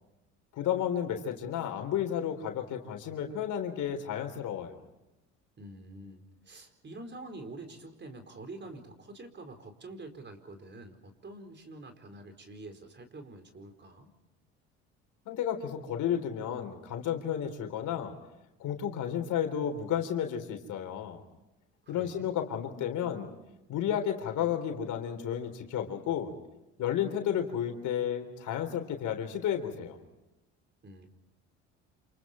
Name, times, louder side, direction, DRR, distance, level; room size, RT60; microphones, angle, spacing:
voice 1, 0.5-4.8 15.3-18.1 18.6-21.2 21.9-23.3 23.7-26.3 26.8-30.0, left 9 dB, 60° left, 6 dB, 3.9 m, -32 dB
voice 2, 5.6-14.1 21.8-22.3 30.8-31.1, right 2 dB, 30° right, 7 dB, 4.5 m, -46 dB
29.0 x 28.0 x 4.5 m, 0.97 s
hypercardioid pair, 70°, 34 cm